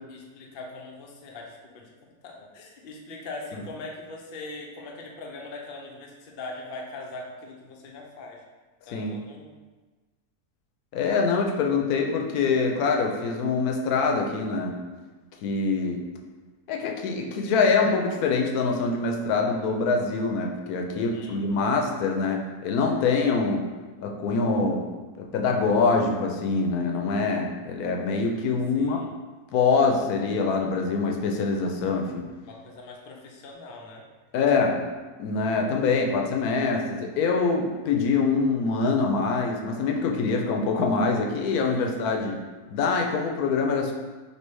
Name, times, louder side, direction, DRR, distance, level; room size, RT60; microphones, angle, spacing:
voice 1, 0.1-8.4 8.9-9.6 20.9-21.5 28.7-29.1 32.4-34.1 41.9-42.1, left 2 dB, 60° left, -1 dB, 0.5 m, -41 dB
voice 2, 10.9-14.7 15.4-16.0 16.7-23.6 24.0-24.8 25.2-29.0 29.5-32.2 34.3-34.8 35.2-42.4 42.7-43.9, left 4 dB, 75° left, 2 dB, 1.0 m, -24 dB
3.3 x 2.8 x 4.5 m, 1.3 s
omnidirectional pair, 1.7 m